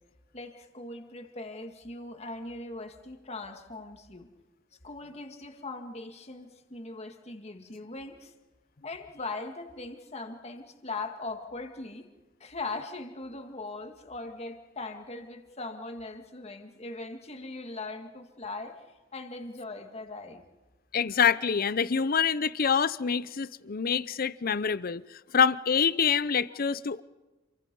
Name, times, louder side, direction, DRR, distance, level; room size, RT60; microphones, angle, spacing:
voice 1, 0.3-4.3 4.8-8.3 8.8-12.1 12.4-18.8 19.1-20.4, left 3 dB, 35° left, 2.1 m, -40 dB
voice 2, 20.9-27.0, left 6 dB, 50° left, 0.6 m, -26 dB
27.5 x 24.5 x 5.5 m
head